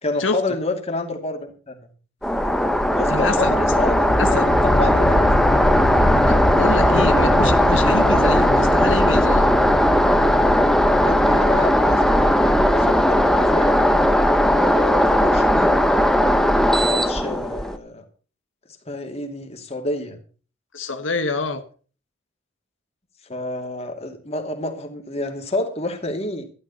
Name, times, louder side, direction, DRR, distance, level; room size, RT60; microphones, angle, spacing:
voice 1, 0.0-1.9 2.9-4.4 4.7-5.5 6.7-7.5 11.0-13.8 14.5-16.0 16.8-18.0 18.8-20.2 23.3-26.5, left 2 dB, 35° left, 4 dB, 2.6 m, -29 dB
sound 1, 2.2-17.8, equal, 5° left, 1.0 m, -17 dB
sound 2, 2.3-15.4, left 1 dB, 60° left, 1.3 m, -27 dB
voice 2, 3.1-3.5 4.2-4.5 6.3-9.5 20.7-21.6, left 3 dB, 85° left, 7 dB, 1.4 m, -26 dB
13.0 x 11.5 x 5.6 m, 0.39 s
head